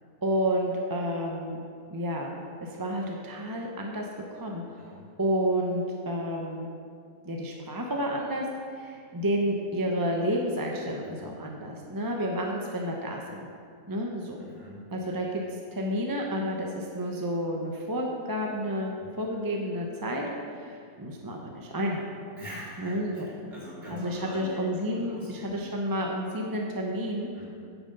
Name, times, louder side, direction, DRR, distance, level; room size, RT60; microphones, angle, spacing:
voice 1, 0.2-1.6 1.9-6.7 7.3-13.5 13.9-14.4 14.9-15.4 15.7-22.0 22.8-23.3 23.9-27.3, equal, 20° right, 0 dB, 0.6 m, -30 dB
voice 2, 11.0-11.3 14.4-14.9 19.0-19.2 22.4-24.6 24.9-25.7 27.3-27.5, equal, 40° right, -8 dB, 3.2 m, -44 dB
9.5 x 7.1 x 5.4 m, 2.2 s
omnidirectional pair, 1.5 m